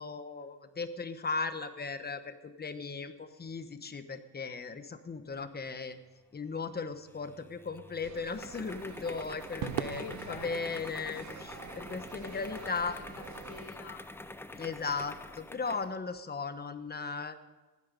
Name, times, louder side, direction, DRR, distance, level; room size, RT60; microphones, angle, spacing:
voice 1, 0.0-6.0 6.3-12.9 14.5-17.4, left 4 dB, 20° left, 9 dB, 1.1 m, -37 dB
sound 1, 7.1-15.9, left 2 dB, 5° left, 0.6 m, -46 dB
sound 2, 8.0-13.7, right 7 dB, 40° right, 1.0 m, -50 dB
Crowd / Fireworks, 9.6-14.1, right 12 dB, 85° right, 0.9 m, -43 dB
voice 2, 9.9-11.0 12.2-14.0, left 7 dB, 85° left, 1 dB, 3.0 m, -49 dB
16.0 x 12.0 x 5.3 m, 1.2 s
cardioid pair, 125°, 43 cm